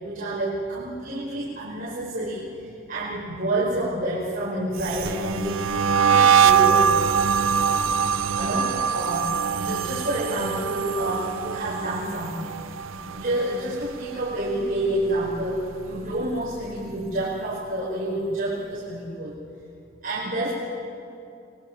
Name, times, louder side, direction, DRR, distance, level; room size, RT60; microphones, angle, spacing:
voice 1, 0.0-7.2 8.1-12.5 12.9-19.3 20.0-20.5, right 1 dB, 45° right, -7 dB, 5.1 m, -29 dB
sound 1, 4.8-13.9 14.2-14.6 15.0-16.5, right 7 dB, 80° right, 0.7 m, -23 dB
28.5 x 22.0 x 6.2 m, 2.6 s
head